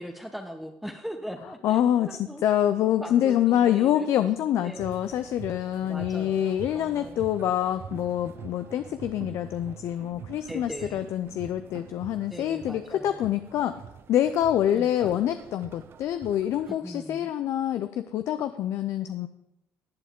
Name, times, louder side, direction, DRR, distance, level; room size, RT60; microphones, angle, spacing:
voice 1, 0.0-2.4 3.0-4.1 4.6-4.9 5.9-7.2 10.5-11.1 12.3-13.3 14.7-15.2 16.7-17.3, equal, ahead, 4 dB, 0.9 m, -40 dB
voice 2, 1.6-13.7 14.1-19.3, left 11 dB, 65° left, 10 dB, 0.5 m, -26 dB
sound 1, 4.7-16.7, right 8 dB, 50° right, 0.6 m, -45 dB
14.5 x 8.4 x 3.7 m, 0.83 s
hypercardioid pair, 65°, 5 cm